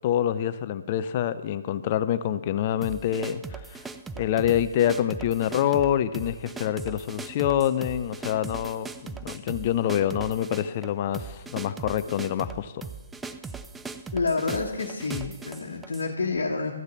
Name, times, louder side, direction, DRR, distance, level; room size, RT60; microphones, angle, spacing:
voice 1, 0.0-3.8 4.2-12.9, left 10 dB, 35° left, 13 dB, 0.6 m, -26 dB
sound 1, 2.8-16.1, right 4 dB, 5° right, 0.4 m, -39 dB
voice 2, 14.1-16.7, left 4 dB, 65° left, -1 dB, 1.4 m, -28 dB
13.5 x 6.6 x 7.2 m, 1.1 s
figure-of-eight pair, 135°, 0 cm